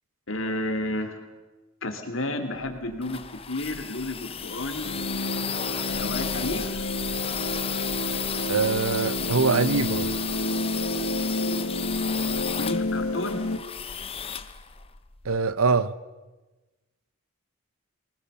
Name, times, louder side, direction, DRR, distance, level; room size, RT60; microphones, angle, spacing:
voice 1, 0.3-1.2 1.8-4.9 5.7-6.8 12.5-13.4, left 1 dB, 65° left, 6 dB, 3.1 m, -31 dB
sound 1, 2.6-15.4, left 7 dB, 25° left, 0.8 m, -33 dB
sound 2, 4.8-13.6, left 1 dB, 80° left, 1.7 m, -30 dB
voice 2, 8.5-10.2 15.2-15.9, right 4 dB, 75° right, 16 dB, 0.9 m, -23 dB
23.5 x 20.0 x 6.9 m, 1.2 s
head